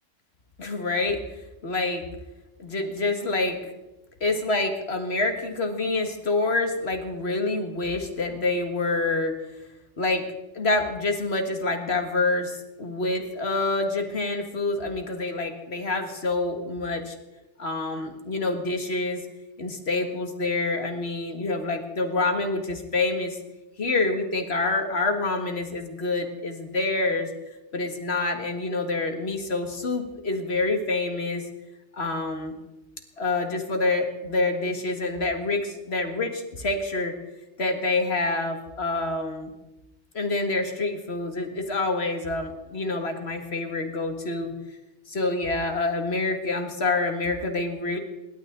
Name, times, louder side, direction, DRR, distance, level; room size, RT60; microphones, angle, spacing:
voice 1, 0.6-1.2 1.6-2.0 2.6-3.7 4.2-9.4 10.0-10.3 10.5-17.2 17.6-19.2 19.6-23.4 23.8-27.3 27.7-31.4 31.9-32.5 33.2-37.1 37.6-39.5 40.1-44.5 45.1-48.0, left 2 dB, 60° left, 5 dB, 2.2 m, -27 dB
27.0 x 12.0 x 3.9 m, 1.0 s
omnidirectional pair, 1.2 m